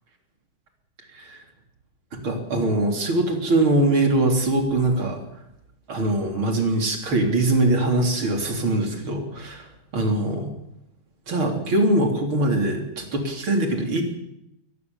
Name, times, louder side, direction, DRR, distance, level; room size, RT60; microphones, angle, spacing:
voice 1, 2.1-5.2 5.9-9.7 9.9-10.5 11.3-14.0, right 2 dB, 90° right, 3 dB, 4.5 m, -22 dB
22.5 x 19.0 x 7.3 m, 0.84 s
omnidirectional pair, 2.2 m